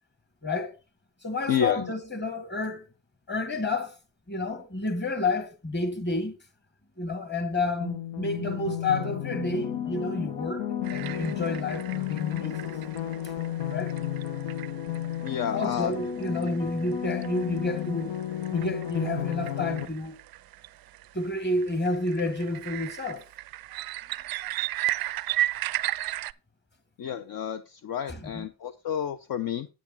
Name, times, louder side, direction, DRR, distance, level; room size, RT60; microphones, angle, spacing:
voice 1, 0.4-0.7 1.2-2.8 3.3-4.0 4.3-6.4 7.0-12.8 13.7-14.0 15.5-18.2 18.5-20.2 21.1-23.3 28.1-28.5, left 2 dB, 20° left, 1.8 m, -30 dB
voice 2, 1.5-1.8 15.2-15.9 27.0-29.7, left 8 dB, 50° left, 0.8 m, -30 dB
sound 1, 7.8-19.8, left 11 dB, 75° left, 1.4 m, -33 dB
sound 2, 10.8-26.3, right 15 dB, 50° right, 0.5 m, -36 dB
8.9 x 8.6 x 4.0 m
cardioid pair, 110°, 46 cm